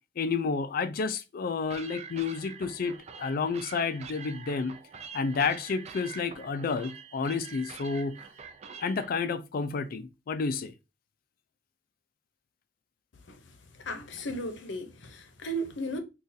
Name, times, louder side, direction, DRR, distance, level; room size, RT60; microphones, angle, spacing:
voice 1, 0.2-4.8 5.1-8.1 8.8-10.7, left 5 dB, 55° left, 0.4 m, -30 dB
sound 1, 1.7-9.1, right 6 dB, 35° right, 0.3 m, -46 dB
voice 2, 13.8-16.0, right 1 dB, 85° left, 0.7 m, -35 dB
3.9 x 2.4 x 2.6 m
head